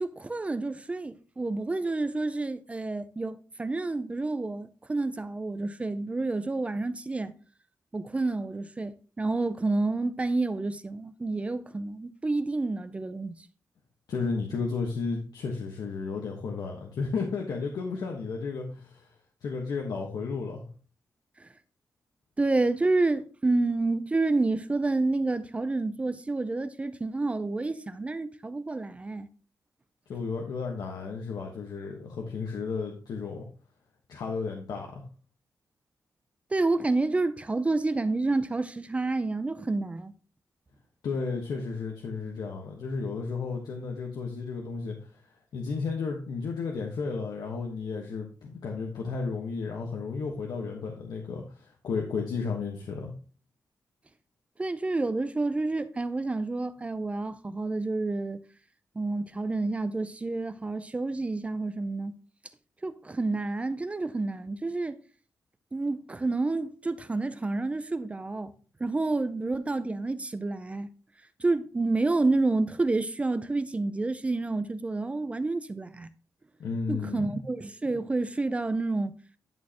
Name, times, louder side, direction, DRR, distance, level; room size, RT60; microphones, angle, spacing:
voice 1, 0.0-7.3 7.9-13.4 21.4-21.5 22.4-29.3 36.5-40.1 54.6-58.4 59.0-62.1 62.8-65.0 65.7-68.5 68.8-70.9 71.4-76.1 76.9-79.2, right 3 dB, 20° right, 0.4 m, -29 dB
voice 2, 14.1-19.1 19.4-20.7 30.1-33.4 34.1-35.0 41.0-45.1 45.5-53.1 76.6-77.2, left 4 dB, 90° left, 1.2 m, -33 dB
10.5 x 6.3 x 2.9 m
wide cardioid pair, 150°, 7 cm